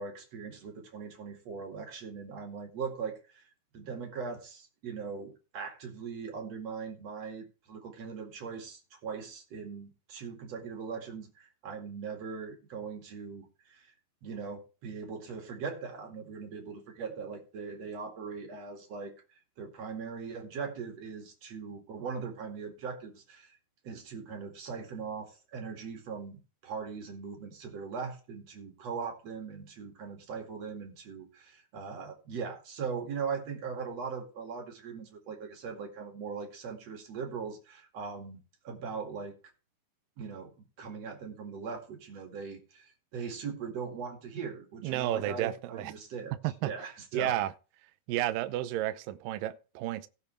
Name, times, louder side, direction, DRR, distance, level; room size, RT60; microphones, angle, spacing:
voice 1, 0.0-3.4 3.7-13.9 14.2-19.1 19.6-23.6 23.8-39.3 40.2-46.3 46.6-47.4, right 5 dB, 45° right, 2.8 m, -40 dB
voice 2, 44.8-45.9 46.4-46.7 47.1-47.5 48.1-50.1, right 14 dB, 85° right, 2.0 m, -31 dB
17.5 x 6.9 x 3.4 m
omnidirectional pair, 4.9 m